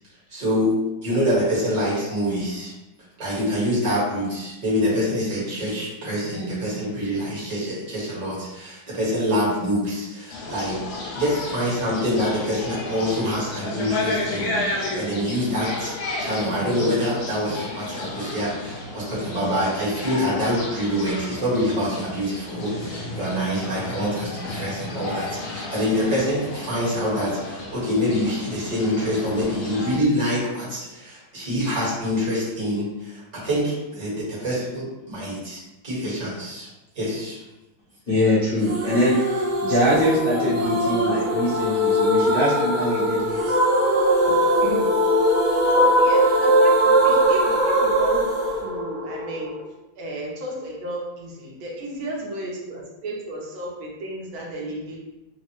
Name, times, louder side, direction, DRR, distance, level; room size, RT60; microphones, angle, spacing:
voice 1, 0.3-2.7 3.2-36.7 36.9-37.4, equal, 30° right, -8 dB, 0.8 m, -25 dB
sound 1, 10.3-30.0, left 2 dB, 75° left, 1.4 m, -32 dB
voice 2, 38.1-43.4, equal, 55° left, -11 dB, 0.6 m, -23 dB
sound 2, 38.7-49.6, equal, 60° right, 1.1 m, -20 dB
voice 3, 40.3-41.6 44.3-44.4 44.7-44.8 45.7-48.2 48.6-49.5 49.9-55.0, right 1 dB, 75° right, -2 dB, 1.5 m, -33 dB
3.6 x 2.0 x 3.0 m, 0.99 s
omnidirectional pair, 2.3 m